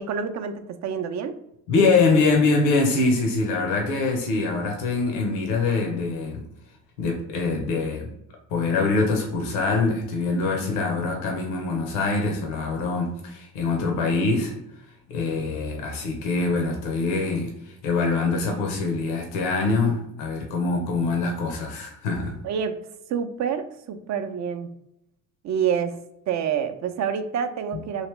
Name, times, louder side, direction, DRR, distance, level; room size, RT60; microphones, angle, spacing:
voice 1, 0.0-1.4 22.4-22.8 23.1-24.7 25.4-26.0 26.3-28.1, right 7 dB, 45° right, 8 dB, 0.5 m, -27 dB
voice 2, 1.7-6.4 7.0-8.1 8.5-14.5 15.1-22.3, left 3 dB, 75° left, 2 dB, 0.9 m, -24 dB
3.1 x 2.8 x 3.1 m, 0.82 s
hypercardioid pair, 60°, 42 cm